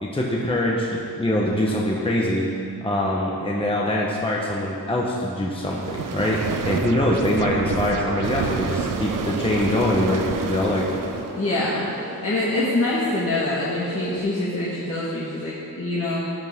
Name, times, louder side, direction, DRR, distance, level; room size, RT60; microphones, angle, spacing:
voice 1, 0.0-2.5 2.8-10.9, left 1 dB, 15° left, -3 dB, 1.1 m, -23 dB
sound 1, 5.6-11.4, right 6 dB, 55° right, 0.7 m, -29 dB
sound 2, 7.0-14.2, right 1 dB, 30° right, 2.4 m, -35 dB
voice 2, 11.3-11.8 12.2-16.2, left 2 dB, 35° left, -8 dB, 1.9 m, -25 dB
16.0 x 10.5 x 3.7 m, 2.6 s
wide cardioid pair, 145°, 38 cm